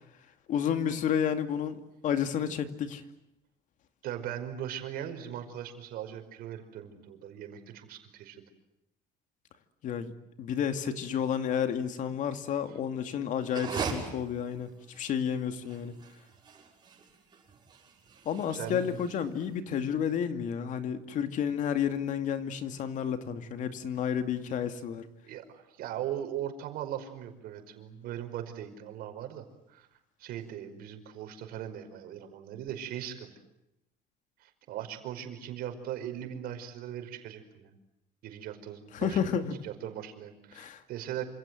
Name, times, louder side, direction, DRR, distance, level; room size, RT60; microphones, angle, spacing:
voice 1, 0.5-3.0 9.8-10.1 10.4-14.7 15.0-15.9 18.3-25.0 38.9-39.5 40.5-40.8, left 8 dB, 50° left, 9 dB, 2.5 m, -31 dB
voice 2, 4.0-8.4 12.7-12.8 18.5-19.1 25.2-29.9 30.2-33.3 34.4-37.7 38.2-41.3, right 10 dB, 60° right, 7 dB, 5.2 m, -39 dB
sound 1, 13.4-19.5, right 5 dB, 25° right, 6.6 m, -40 dB
28.0 x 27.5 x 7.8 m, 0.83 s
cardioid pair, 160°, 17 cm